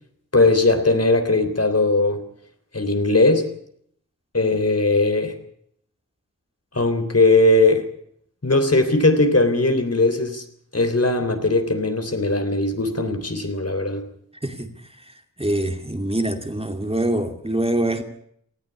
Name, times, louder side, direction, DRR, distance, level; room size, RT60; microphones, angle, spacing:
voice 1, 0.3-2.2 2.7-3.5 4.3-5.4 6.7-7.9 8.4-10.4 10.7-14.1, left 2 dB, 50° left, 7 dB, 3.5 m, -19 dB
voice 2, 15.4-18.0, right 1 dB, 20° right, 5 dB, 2.4 m, -24 dB
19.0 x 14.5 x 9.8 m, 0.68 s
wide cardioid pair, 55°, 33 cm